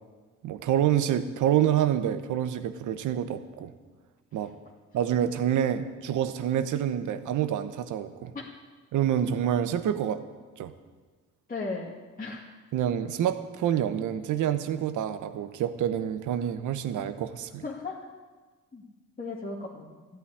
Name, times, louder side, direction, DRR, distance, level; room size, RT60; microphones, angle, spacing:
voice 1, 0.4-3.7 4.3-4.5 4.9-8.3 8.9-10.2 10.6-10.7 12.7-17.6, right 10 dB, 80° right, 11 dB, 1.2 m, -27 dB
voice 2, 11.5-11.9 12.2-12.6 17.6-18.0 18.7-18.8 19.2-20.0, left 3 dB, 30° left, -3 dB, 2.1 m, -36 dB
14.0 x 9.2 x 9.9 m, 1.4 s
cardioid pair, 90°, 30 cm